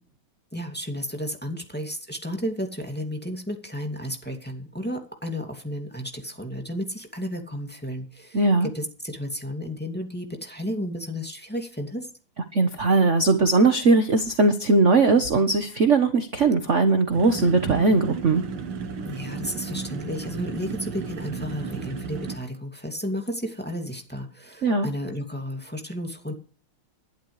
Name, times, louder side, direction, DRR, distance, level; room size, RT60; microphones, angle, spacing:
voice 1, 0.5-12.1 19.1-26.3, equal, 5° left, 3 dB, 2.4 m, -33 dB
voice 2, 8.3-8.7 12.5-18.4 24.6-24.9, right 3 dB, 40° right, 7 dB, 1.3 m, -19 dB
sound 1, 17.1-22.4, right 5 dB, 90° right, 2.3 m, -34 dB
20.0 x 11.5 x 3.3 m, 0.39 s
omnidirectional pair, 2.3 m